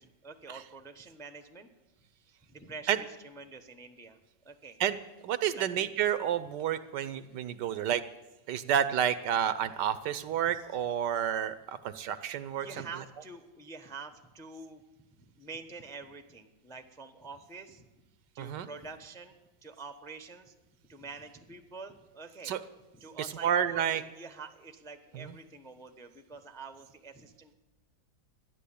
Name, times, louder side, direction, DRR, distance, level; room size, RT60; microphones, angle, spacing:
voice 1, 0.0-1.7 2.0-4.2 4.4-4.8 5.5-5.9 12.5-14.8 15.2-17.9 18.3-20.5 20.9-22.5 22.9-27.5, right 4 dB, 5° left, 8 dB, 0.6 m, -47 dB
voice 2, 5.2-8.0 8.5-12.7 18.4-18.7 22.5-22.6 23.4-24.0, right 9 dB, 70° right, 14 dB, 1.2 m, -30 dB
13.0 x 10.5 x 8.4 m, 1.1 s
omnidirectional pair, 2.0 m